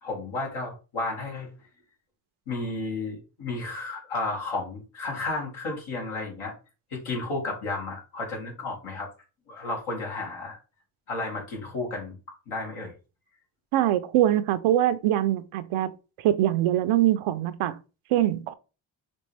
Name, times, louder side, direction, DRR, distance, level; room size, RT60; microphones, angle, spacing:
voice 1, 0.0-1.5 2.5-6.5 6.9-9.1 9.5-10.6 11.1-12.1 12.5-12.9, left 3 dB, 80° left, 2.1 m, -32 dB
voice 2, 13.7-15.9 16.2-17.8 18.1-18.5, right 13 dB, 85° right, 0.6 m, -23 dB
5.2 x 2.9 x 3.3 m
supercardioid pair, 55°, 48 cm